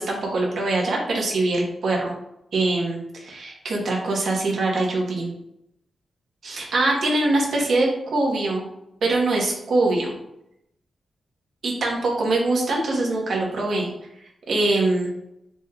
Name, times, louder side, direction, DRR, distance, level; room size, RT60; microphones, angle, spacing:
voice 1, 0.0-2.1 2.5-5.3 6.4-8.6 9.0-10.1 11.6-13.9 14.5-15.1, right 2 dB, 65° right, -1 dB, 1.0 m, -23 dB
4.2 x 3.4 x 2.3 m, 0.80 s
wide cardioid pair, 170°, 0 cm